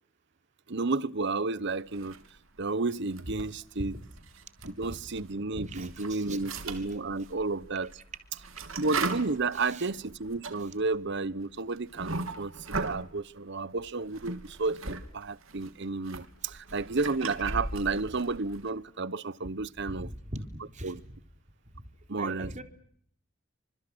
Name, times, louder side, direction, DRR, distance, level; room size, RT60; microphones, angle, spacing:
voice 1, 0.7-2.2 2.6-3.9 4.8-7.9 8.8-20.1 20.8-21.0 22.1-22.5, right 3 dB, 60° right, 1.0 m, -32 dB
sound 1, 1.9-2.6 3.0-5.3 5.6-13.1 13.8-15.0 15.3-18.7, right 3 dB, 85° right, 3.0 m, -38 dB
voice 2, 5.6-6.4 6.7-6.9 8.7-8.8 9.5-9.9 19.9-21.2 21.7-21.8 22.2-22.6, right 1 dB, 35° right, 3.7 m, -41 dB
30.0 x 26.0 x 6.3 m
head